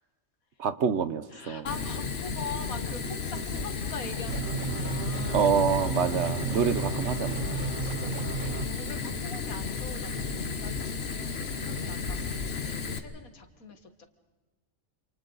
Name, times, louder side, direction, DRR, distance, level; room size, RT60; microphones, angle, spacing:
voice 1, 0.6-1.7 5.3-7.5, right 6 dB, 60° right, 12 dB, 1.1 m, -27 dB
voice 2, 1.3-5.5 6.8-14.1, left 4 dB, 80° left, 7 dB, 2.2 m, -44 dB
Fire, 1.7-13.0, left 4 dB, 50° left, 1.4 m, -33 dB
sound 1, 4.3-8.7, right 5 dB, 40° right, 0.8 m, -33 dB
28.0 x 27.5 x 4.0 m, 1.2 s
omnidirectional pair, 1.5 m